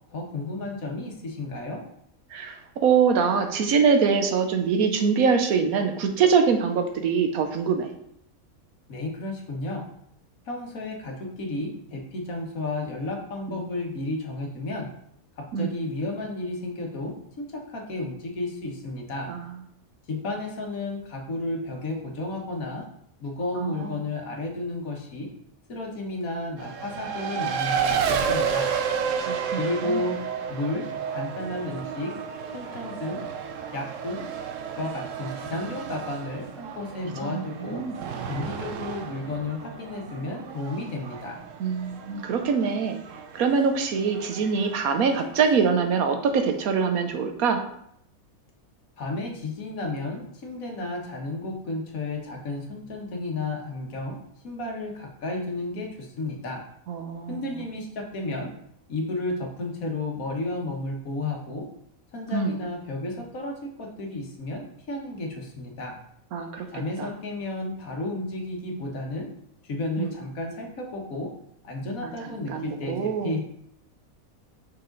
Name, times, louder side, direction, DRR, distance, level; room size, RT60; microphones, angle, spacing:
voice 1, 0.1-1.8 8.9-9.9 10.4-14.9 15.4-19.3 20.1-22.9 23.2-25.3 25.7-28.7 29.6-30.2 30.5-32.1 32.5-33.2 33.7-34.2 34.7-37.8 38.3-41.4 49.0-56.6 57.3-58.5 58.9-61.7 62.1-66.0 66.7-69.3 69.6-71.3 71.6-73.4, left 2 dB, 75° left, 1 dB, 1.7 m, -32 dB
voice 2, 2.3-7.9 13.5-13.6 15.5-15.7 19.3-19.4 23.5-24.0 29.3-30.0 37.2-38.0 41.6-47.6 56.9-57.5 62.3-62.6 66.3-66.7 67.0-67.1 70.0-70.1 72.0-72.1 72.5-73.4, right 5 dB, 85° right, 6 dB, 1.3 m, -24 dB
Race car auto racing, 26.6-45.7, right 7 dB, 65° right, 1.0 m, -32 dB
5.8 x 4.9 x 3.9 m, 0.71 s
omnidirectional pair, 1.5 m